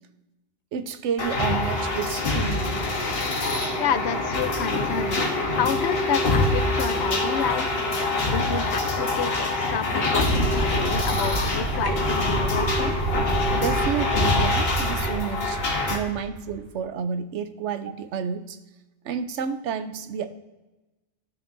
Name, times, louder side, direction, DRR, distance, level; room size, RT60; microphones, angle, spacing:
voice 1, 0.7-3.0 13.5-15.6 15.9-18.6 19.0-20.3, right 7 dB, 90° right, 10 dB, 0.9 m, -30 dB
sound 1, 1.2-16.0, left 2 dB, 60° left, 1.3 m, -25 dB
sound 2, 3.4-3.5 5.2-5.3 5.6-12.1, right 1 dB, 20° right, 1.3 m, -42 dB
voice 2, 3.8-7.7 8.3-13.0, left 7 dB, 75° left, 10 dB, 0.9 m, -29 dB
sound 3, 10.3-16.8, right 4 dB, 45° right, 0.6 m, -30 dB
12.5 x 6.1 x 2.6 m, 1.1 s
omnidirectional pair, 1.2 m